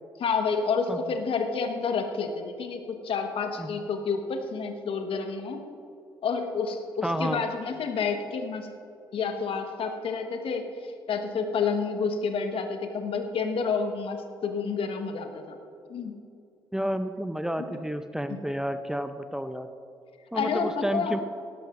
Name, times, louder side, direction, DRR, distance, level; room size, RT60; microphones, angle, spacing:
voice 1, 0.2-5.6 6.2-8.7 9.1-15.6 15.9-16.1 18.3-18.4 20.3-21.2, left 5 dB, 55° left, 6 dB, 1.4 m, -29 dB
voice 2, 7.0-7.4 16.7-19.7 20.3-21.2, equal, 5° right, 9 dB, 0.7 m, -30 dB
18.0 x 13.0 x 2.6 m, 2.7 s
hypercardioid pair, 45°, 11 cm